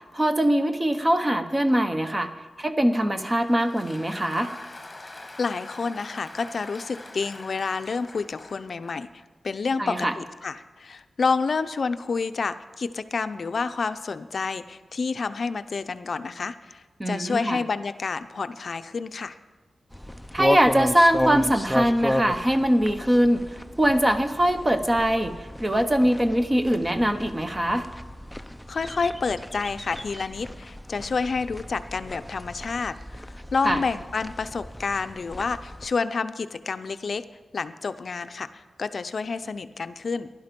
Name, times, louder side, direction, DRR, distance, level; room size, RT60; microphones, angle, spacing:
voice 1, 0.1-2.3 2.6-4.5 9.8-10.1 17.0-17.6 20.3-23.4 23.8-25.3 25.6-27.9 33.6-33.8, equal, 20° right, 8 dB, 0.9 m, -22 dB
Applause, 3.0-9.1, left 2 dB, 20° left, 1.4 m, -44 dB
voice 2, 5.4-9.1 9.4-19.4 28.7-33.2 33.5-37.2 37.5-40.3, left 4 dB, 60° left, 10 dB, 0.5 m, -29 dB
sound 1, 19.9-35.9, left 1 dB, 5° left, 0.5 m, -33 dB
16.0 x 11.5 x 5.2 m, 1.3 s
wide cardioid pair, 105°, 0 cm